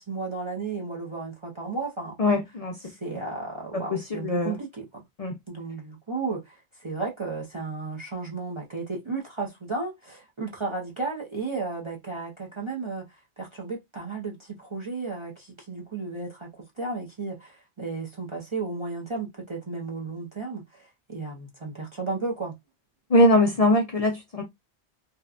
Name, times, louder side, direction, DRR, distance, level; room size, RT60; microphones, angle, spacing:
voice 1, 0.0-2.2 2.8-5.0 5.5-22.5, right 3 dB, 40° right, 0.5 m, -34 dB
voice 2, 2.2-2.9 3.7-4.6 5.2-5.3 23.1-24.4, left 1 dB, 50° left, 0.5 m, -22 dB
2.8 x 2.1 x 2.3 m
omnidirectional pair, 1.1 m